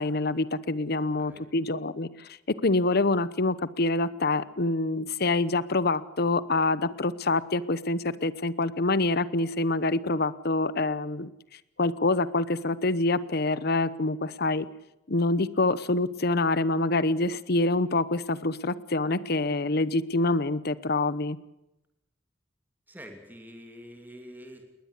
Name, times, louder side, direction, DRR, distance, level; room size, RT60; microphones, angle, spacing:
voice 1, 0.0-2.3 2.6-11.3 11.8-14.7 15.1-21.4, left 2 dB, 55° left, 17 dB, 1.0 m, -26 dB
voice 2, 1.0-1.5 22.9-24.7, equal, 10° right, 4 dB, 2.9 m, -46 dB
20.0 x 20.0 x 8.4 m, 0.90 s
head